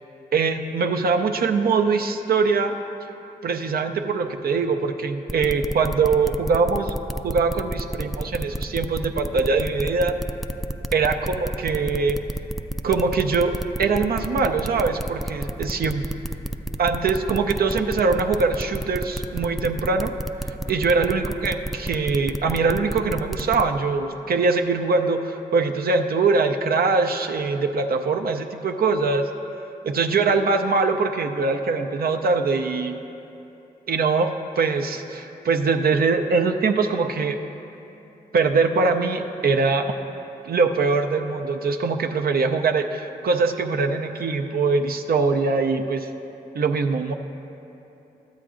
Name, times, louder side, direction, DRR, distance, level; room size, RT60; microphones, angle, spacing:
voice 1, 0.3-2.8 3.4-6.9 7.2-10.2 10.9-12.2 12.8-13.5 13.8-16.0 16.8-20.1 20.4-29.3 29.9-33.0 33.9-37.4 38.3-39.9 40.4-46.1 46.5-47.1, right 4 dB, 60° right, 5 dB, 0.5 m, -22 dB
sound 1, 5.3-23.6, right 1 dB, ahead, 0.4 m, -30 dB
12.5 x 8.1 x 2.5 m, 2.9 s
supercardioid pair, 40°, 17 cm